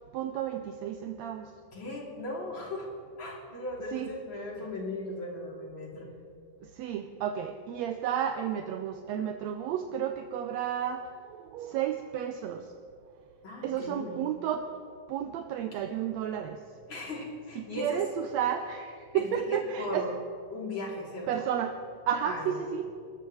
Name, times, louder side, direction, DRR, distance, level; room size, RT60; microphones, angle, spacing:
voice 1, 0.1-1.5 3.9-4.1 6.8-12.7 13.6-14.7 15.1-16.6 17.6-20.1 21.3-21.8 22.1-22.9, right 9 dB, 75° right, 5 dB, 1.8 m, -32 dB
voice 2, 1.7-2.9 3.2-6.1 13.4-14.3 16.9-18.0 19.1-20.1 20.5-21.4 22.2-22.6, left 2 dB, 40° left, -3 dB, 3.6 m, -37 dB
29.0 x 13.5 x 3.2 m, 2.3 s
omnidirectional pair, 3.5 m